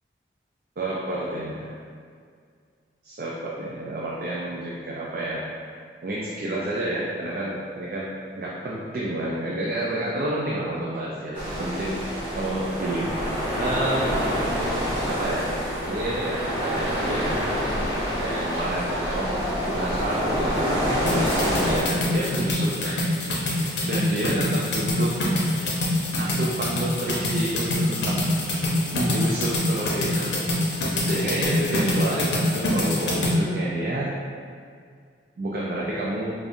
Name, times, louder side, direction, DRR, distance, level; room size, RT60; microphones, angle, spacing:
voice 1, 0.8-1.7 3.0-5.4 6.0-14.1 15.1-15.5 15.8-17.5 18.2-21.0 21.6-25.2 26.2-28.2 28.9-34.1 35.4-36.3, right 1 dB, 50° right, -5 dB, 0.4 m, -30 dB
sound 1, 11.3-21.8, equal, 10° right, 1.1 m, -26 dB
sound 2, 21.1-33.3, left 1 dB, 75° left, 0.7 m, -25 dB
5.0 x 2.4 x 2.6 m, 2.1 s
head